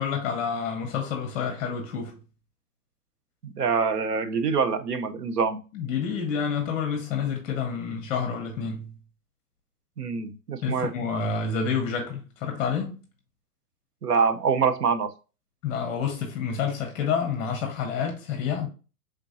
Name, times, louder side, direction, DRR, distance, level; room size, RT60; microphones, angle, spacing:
voice 1, 0.0-2.2 5.7-8.9 10.6-13.0 15.6-18.7, left 6 dB, 15° left, 0.7 m, -28 dB
voice 2, 3.4-5.6 10.0-10.9 14.0-15.1, right 5 dB, 85° right, 0.9 m, -25 dB
4.6 x 3.7 x 2.7 m
hypercardioid pair, 155°, 46 cm